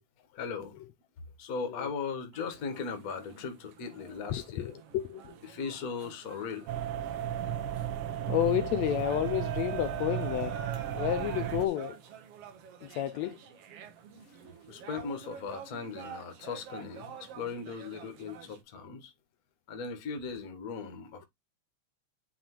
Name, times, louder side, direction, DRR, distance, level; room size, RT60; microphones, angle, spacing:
voice 1, 0.3-0.8 1.4-4.7 5.4-6.7 14.7-19.1 19.7-21.2, left 5 dB, 50° left, 1.0 m, -38 dB
sound 1, 2.3-18.6, right 8 dB, 65° right, 1.9 m, -47 dB
voice 2, 4.3-5.2 8.3-10.6 10.9-12.0 12.8-13.4, left 12 dB, 80° left, 1.6 m, -31 dB
sound 2, 6.7-11.7, right 10 dB, 80° right, 1.2 m, -34 dB
8.6 x 3.8 x 3.0 m
omnidirectional pair, 3.4 m